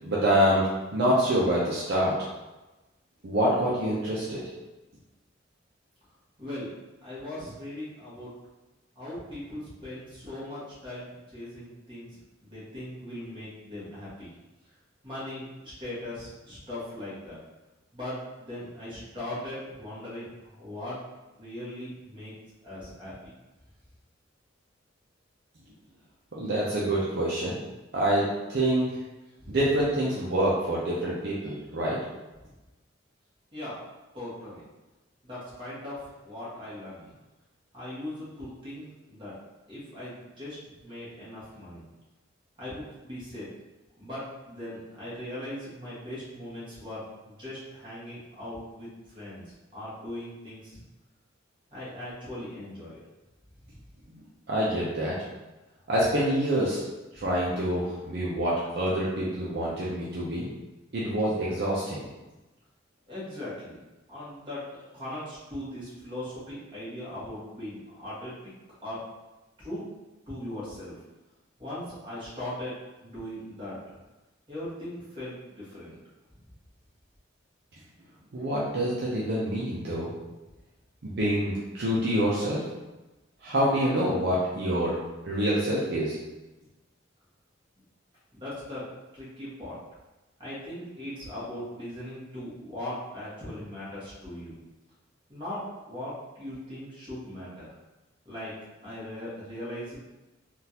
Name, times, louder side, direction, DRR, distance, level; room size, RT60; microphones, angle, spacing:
voice 1, 0.0-2.2 3.2-4.4 26.3-27.6 27.9-28.9 29.5-32.0 54.1-54.2 54.5-55.2 55.9-56.8 57.1-60.5 60.9-62.0 78.3-80.1 81.0-82.6 83.4-85.0 85.2-86.2, right 1 dB, 60° right, -6 dB, 0.6 m, -26 dB
voice 2, 6.4-6.7 7.0-8.3 8.9-12.1 12.4-14.3 15.0-17.4 17.9-21.0 21.4-22.3 22.6-23.1 29.4-29.6 33.5-33.8 34.1-34.6 35.2-37.1 37.7-39.3 39.7-41.8 42.6-43.5 44.0-48.9 49.1-50.8 51.7-53.0 63.1-63.8 64.1-68.3 68.8-69.0 69.6-69.8 70.3-71.0 71.6-72.7 73.0-74.0 74.5-76.0 88.3-88.9 89.1-89.7 90.4-94.6 95.3-97.7 98.2-98.5 98.8-100.1, left 1 dB, 25° right, -9 dB, 1.5 m, -39 dB
3.7 x 2.4 x 2.8 m, 1.1 s
head